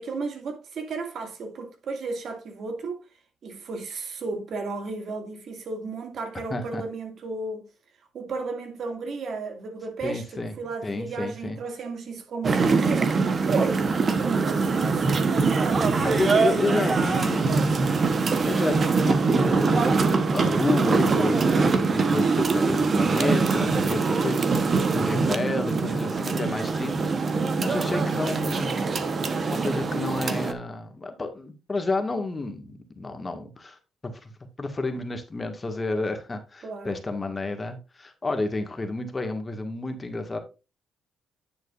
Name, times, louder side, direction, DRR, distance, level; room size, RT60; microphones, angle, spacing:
voice 1, 0.0-3.0 3.4-7.7 8.1-10.2 10.6-13.1 13.5-13.9 14.2-18.0 36.6-37.0, right 4 dB, 60° right, 2.2 m, -33 dB
voice 2, 6.5-6.8 10.0-10.5 10.8-11.6 16.0-17.8 18.4-28.9 29.2-33.8 34.0-34.3 34.6-40.4, left 2 dB, 25° left, 1.8 m, -30 dB
sound 1, 12.4-30.5, right 4 dB, 40° right, 1.1 m, -23 dB
9.7 x 7.7 x 2.5 m
cardioid pair, 90°, 0 cm